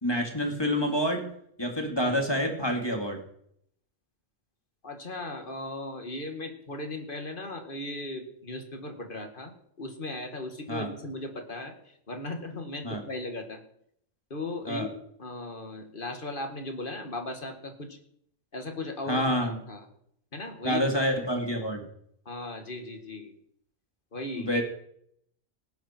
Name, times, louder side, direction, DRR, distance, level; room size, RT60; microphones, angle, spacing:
voice 1, 0.0-1.2 1.6-3.2 10.7-10.9 12.8-13.0 14.7-14.9 19.1-19.5 20.6-21.8 24.4-24.6, equal, 20° left, 2 dB, 2.6 m, -27 dB
voice 2, 4.8-13.6 14.3-18.0 18.5-19.9 20.3-21.0 22.3-23.3 24.1-24.5, left 2 dB, 40° left, 5 dB, 2.2 m, -37 dB
18.5 x 11.0 x 4.5 m, 0.69 s
omnidirectional pair, 1.4 m